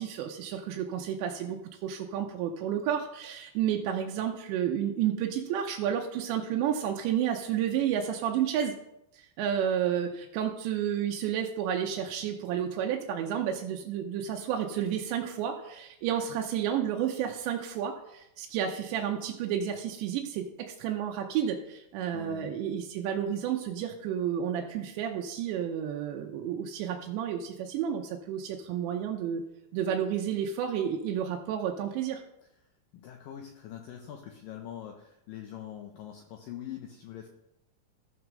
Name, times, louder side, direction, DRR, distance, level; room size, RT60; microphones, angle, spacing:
voice 1, 0.0-8.7 9.1-29.4 29.7-32.2, right 9 dB, 85° right, 2 dB, 3.1 m, -31 dB
voice 2, 22.1-22.6 32.9-37.3, left 10 dB, 85° left, 3 dB, 2.0 m, -43 dB
14.0 x 4.7 x 6.3 m, 0.82 s
omnidirectional pair, 5.0 m